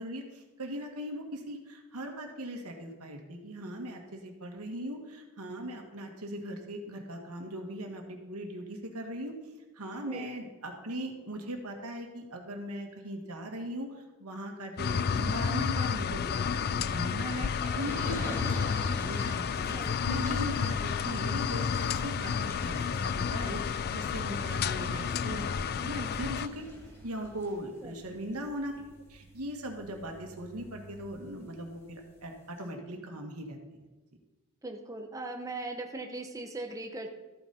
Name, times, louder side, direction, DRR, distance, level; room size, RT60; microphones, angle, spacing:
voice 1, 0.0-9.3 9.7-18.7 19.0-26.6 27.0-28.7 29.1-33.6, equal, 85° right, 3 dB, 1.9 m, -39 dB
sound 1, 14.8-26.5, left 6 dB, 45° left, 0.3 m, -31 dB
sound 2, 17.5-31.8 32.2-32.3 32.6-32.7, equal, 10° left, 2.3 m, -47 dB
voice 2, 34.6-37.1, right 2 dB, 15° right, 3 dB, 0.8 m, -39 dB
13.5 x 9.1 x 4.3 m, 1.2 s
head